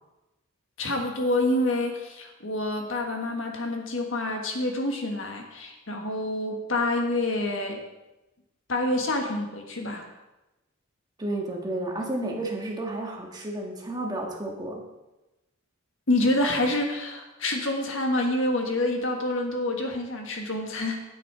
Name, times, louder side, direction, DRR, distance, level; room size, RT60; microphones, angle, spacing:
voice 1, 0.8-7.8 8.7-10.0 16.1-21.0, left 1 dB, 65° left, 2 dB, 1.6 m, -27 dB
voice 2, 11.2-14.8, right 1 dB, 20° right, 0 dB, 1.5 m, -31 dB
9.5 x 9.0 x 4.8 m, 1.0 s
head